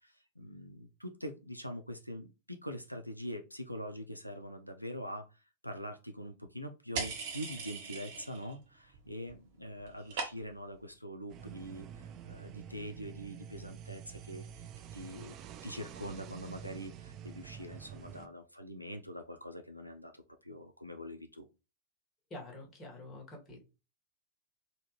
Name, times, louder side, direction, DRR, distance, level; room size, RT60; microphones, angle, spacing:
voice 1, 0.0-14.7 14.9-15.4 15.6-21.5, equal, 90° left, 6 dB, 0.3 m, -44 dB
sound 1, 6.9-8.5 8.8-9.4 9.6-10.7, right 4 dB, 50° right, 1.0 m, -40 dB
sound 2, 11.3-18.3, right 9 dB, 35° right, 0.4 m, -48 dB
voice 2, 22.3-23.6, left 2 dB, 25° left, 1 dB, 1.3 m, -47 dB
3.4 x 2.3 x 3.0 m, 0.29 s
figure-of-eight pair, 90°, 0 cm